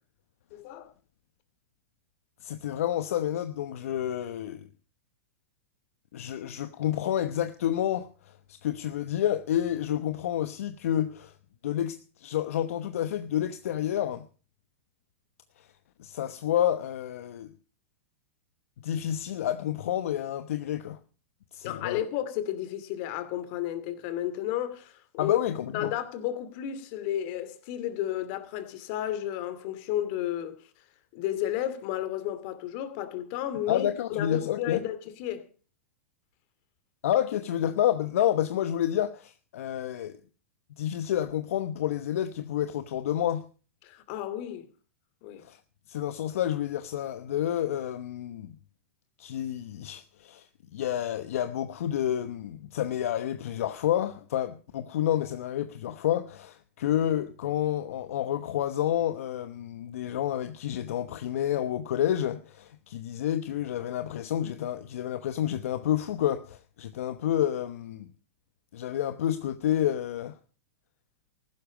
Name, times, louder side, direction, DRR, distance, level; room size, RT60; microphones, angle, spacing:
voice 1, 0.5-0.9 21.6-25.4 25.7-30.5 31.1-35.5 43.8-44.7 45.2-45.4, left 12 dB, 50° left, 2.5 m, -32 dB
voice 2, 2.4-4.6 6.1-11.3 11.6-14.2 15.6-15.7 16.0-17.5 18.8-21.0 21.5-22.0 25.2-25.9 33.7-34.8 37.0-40.2 40.8-43.4 45.4-45.6 45.9-48.6 49.2-50.5 50.7-68.1 68.7-70.3, left 11 dB, 70° left, 1.0 m, -29 dB
15.5 x 12.5 x 5.1 m
hypercardioid pair, 120°, 8 cm